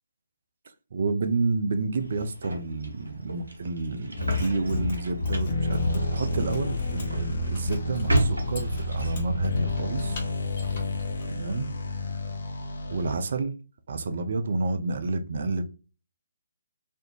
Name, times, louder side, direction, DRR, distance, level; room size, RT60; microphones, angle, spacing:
voice 1, 0.9-10.2 11.3-11.7 12.9-13.5 13.9-15.6, right 3 dB, 50° right, 0.4 m, -30 dB
sound 1, 2.0-9.5, right 1 dB, 70° right, 0.8 m, -33 dB
Mechanisms, 4.1-11.2, left 4 dB, 35° left, 1.0 m, -33 dB
sound 2, 5.4-13.4, left 2 dB, 55° left, 0.5 m, -30 dB
2.4 x 2.1 x 2.9 m
figure-of-eight pair, 140°, 0 cm